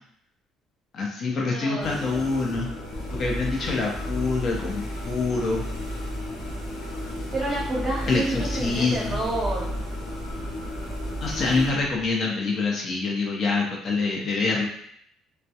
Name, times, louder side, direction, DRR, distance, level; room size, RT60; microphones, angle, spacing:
voice 1, 0.9-2.7 3.1-5.6 8.1-9.2 11.2-14.6, left 3 dB, 50° left, -1 dB, 0.6 m, -26 dB
voice 2, 1.4-2.4 7.3-9.7, right 2 dB, 30° right, -7 dB, 0.7 m, -29 dB
sound 1, 1.8-11.7, equal, 90° left, 0.7 m, -33 dB
Distant Thunderstorm, 2.8-12.1, left 1 dB, 10° left, 0.8 m, -42 dB
2.2 x 2.0 x 2.7 m, 0.69 s
cardioid pair, 95°, 0 cm